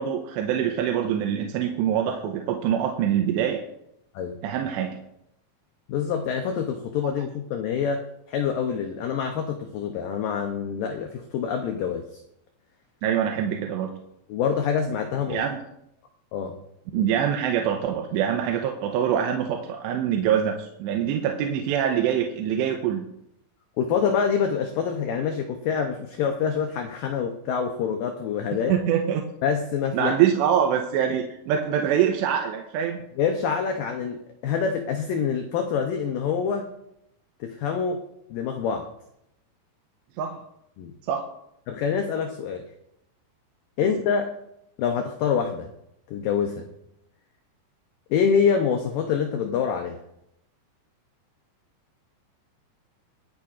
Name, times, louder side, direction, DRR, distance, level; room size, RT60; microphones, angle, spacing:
voice 1, 0.0-3.6 4.4-4.9 13.0-13.9 15.3-15.5 16.9-23.0 28.7-29.2 29.9-33.0 40.2-40.4 41.1-41.3, right 9 dB, 85° right, 3 dB, 3.0 m, -24 dB
voice 2, 5.9-12.2 14.3-15.4 16.3-16.6 23.8-28.8 29.4-30.2 33.2-36.7 37.4-38.0 38.3-38.9 40.8-40.9 41.7-42.6 43.8-44.4 44.8-45.7 46.1-46.7 48.1-50.0, left 7 dB, 85° left, 4 dB, 1.9 m, -26 dB
25.0 x 8.7 x 2.5 m, 0.79 s
omnidirectional pair, 5.0 m